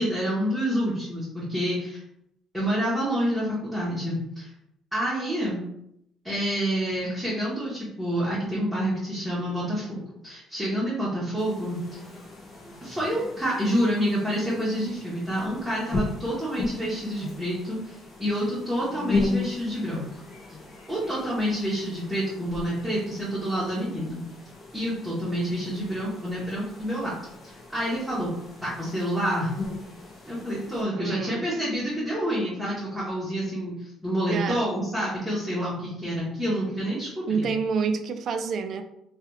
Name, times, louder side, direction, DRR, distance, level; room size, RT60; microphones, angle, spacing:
voice 1, 0.0-2.0 2.5-4.5 4.9-5.6 6.2-12.0 12.8-20.0 20.9-24.2 24.7-27.1 27.4-28.3 28.6-29.5 30.3-37.5, equal, 5° right, -9 dB, 1.0 m, -28 dB
sound 1, 11.4-30.8, left 3 dB, 30° left, 0.9 m, -36 dB
voice 2, 31.0-31.5 34.3-34.7 37.3-38.8, right 5 dB, 50° right, 8 dB, 0.4 m, -28 dB
3.2 x 2.3 x 3.0 m, 0.79 s
cardioid pair, 115°, 0 cm